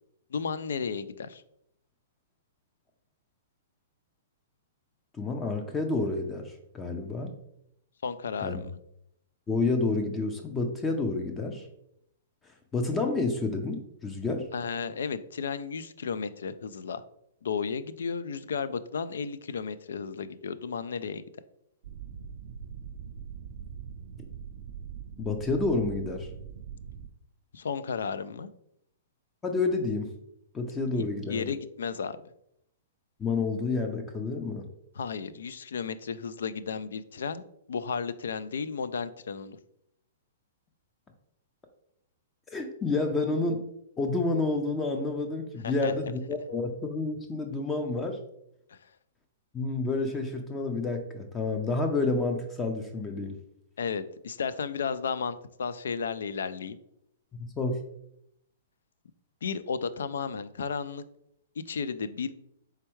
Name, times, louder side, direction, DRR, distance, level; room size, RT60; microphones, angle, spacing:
voice 1, 0.3-1.4 8.0-8.8 14.5-17.0 17.4-21.2 27.5-28.5 31.3-32.2 35.0-37.4 37.7-39.6 45.6-45.9 48.7-48.8 53.8-56.8 59.4-61.0 61.7-62.3, left 6 dB, 80° left, 15 dB, 0.3 m, -33 dB
voice 2, 5.2-7.3 8.4-8.6 9.5-11.7 12.7-14.5 25.2-26.3 29.4-30.1 30.5-31.5 33.2-34.7 42.5-43.6 44.0-48.2 49.5-53.4 57.4-57.8, left 3 dB, 15° left, 5 dB, 0.5 m, -29 dB
sound 1, 21.8-27.1, right 7 dB, 60° right, 0.3 m, -42 dB
4.4 x 3.4 x 3.1 m, 0.76 s
hypercardioid pair, 135°, 0 cm